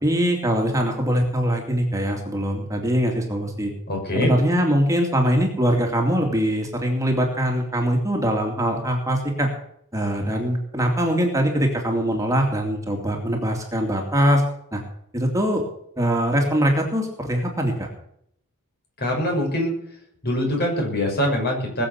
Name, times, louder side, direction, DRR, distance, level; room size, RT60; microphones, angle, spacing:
voice 1, 0.0-3.7 4.1-9.5 9.9-14.4 14.7-14.8 15.1-15.6 16.0-17.9, equal, 15° right, 1 dB, 2.5 m, -22 dB
voice 2, 3.9-4.3 19.0-19.7 20.2-21.9, left 1 dB, 50° left, 1 dB, 6.4 m, -23 dB
20.5 x 7.7 x 7.1 m, 0.70 s
head